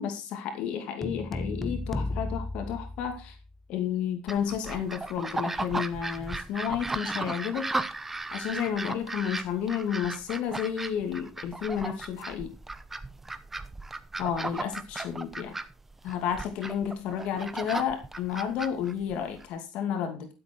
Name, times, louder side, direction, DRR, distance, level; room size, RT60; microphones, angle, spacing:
voice 1, 0.0-3.4 3.7-7.7 8.3-12.5 14.2-15.5 16.0-20.3, left 8 dB, 70° left, 6 dB, 2.5 m, -31 dB
sound 1, 1.0-3.6, left 2 dB, 15° left, 1.2 m, -34 dB
sound 2, 4.3-19.5, right 2 dB, 15° right, 1.0 m, -36 dB
13.0 x 8.0 x 4.6 m, 0.30 s
cardioid pair, 115°, 2 cm